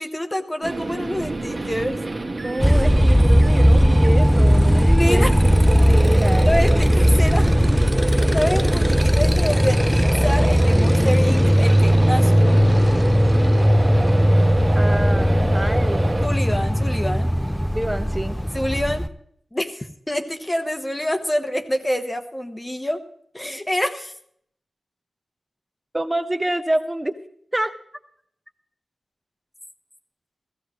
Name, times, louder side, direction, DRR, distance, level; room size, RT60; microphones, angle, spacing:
voice 1, 0.0-2.0 4.9-5.3 6.4-7.5 8.3-12.7 16.2-17.3 18.5-19.1 19.5-23.0 23.3-24.1, equal, 15° left, 7 dB, 1.2 m, -26 dB
sound 1, 0.6-16.3, right 2 dB, 40° right, 1.6 m, -28 dB
voice 2, 2.4-5.3 5.7-6.5 14.7-16.2 17.7-18.4 25.9-27.1 27.5-27.7, right 1 dB, 15° right, 8 dB, 1.1 m, -27 dB
Motorcycle, 2.6-19.1, equal, ahead, 0.6 m, -17 dB
15.5 x 15.0 x 3.2 m, 0.67 s
wide cardioid pair, 65°, 0 cm